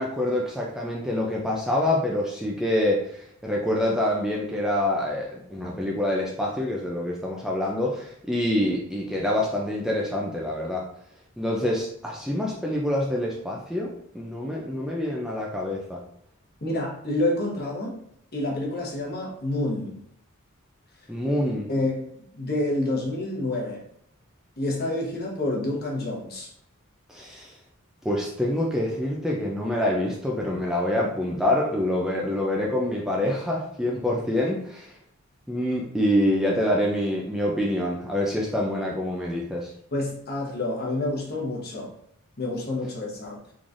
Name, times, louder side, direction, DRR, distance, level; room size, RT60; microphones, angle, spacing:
voice 1, 0.0-10.8 11.4-16.0 21.1-21.7 27.1-27.6 28.0-34.9 35.5-39.7, left 1 dB, 5° right, -3 dB, 0.3 m, -26 dB
voice 2, 16.6-18.0 18.3-20.0 21.7-23.8 24.6-26.5 39.9-41.9 42.4-43.4, left 2 dB, 45° left, -2 dB, 1.1 m, -28 dB
3.8 x 3.1 x 2.5 m, 0.70 s
head